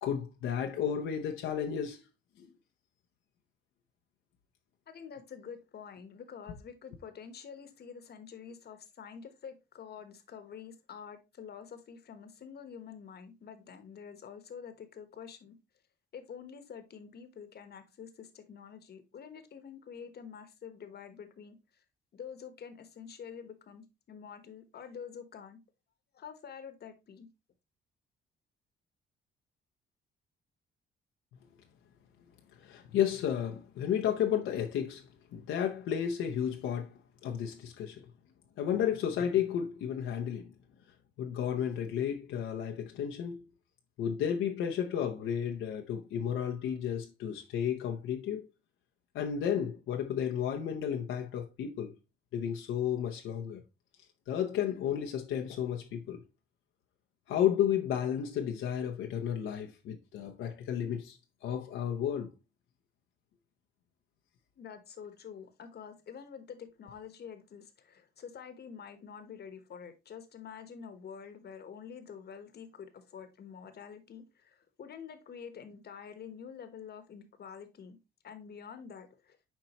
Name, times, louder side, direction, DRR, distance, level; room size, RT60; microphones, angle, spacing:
voice 1, 0.0-2.0 32.6-38.1 38.6-40.5 41.2-43.4 44.0-48.5 49.1-51.9 52.3-53.6 54.3-56.2 57.3-61.2 61.4-62.3, left 9 dB, 80° left, 0.8 m, -32 dB
voice 2, 4.9-15.6 16.1-21.6 22.1-25.6 26.1-27.3 64.6-78.0 78.2-79.4, left 7 dB, 55° left, 1.2 m, -47 dB
7.3 x 4.5 x 3.0 m
cardioid pair, 90°, 20 cm